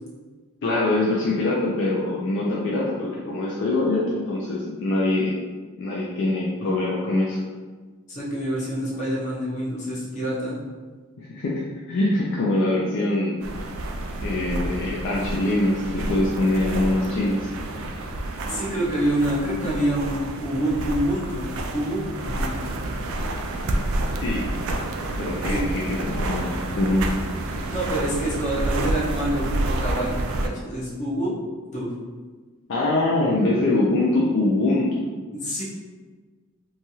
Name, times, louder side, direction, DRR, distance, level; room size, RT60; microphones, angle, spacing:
voice 1, 0.6-5.4 5.8-7.4 11.2-13.4 14.2-17.5 24.2-24.4 25.2-27.1 32.7-35.0, left 2 dB, 55° left, -5 dB, 0.4 m, -23 dB
voice 2, 8.1-10.6 18.5-21.5 21.7-22.0 22.3-22.5 25.5-25.6 27.7-30.1 30.4-31.3 31.7-31.9 35.4-35.6, right 1 dB, 35° left, -5 dB, 0.7 m, -26 dB
sound 1, 13.4-30.5, right 1 dB, 65° right, 0.3 m, -29 dB
3.1 x 2.3 x 2.7 m, 1.4 s
head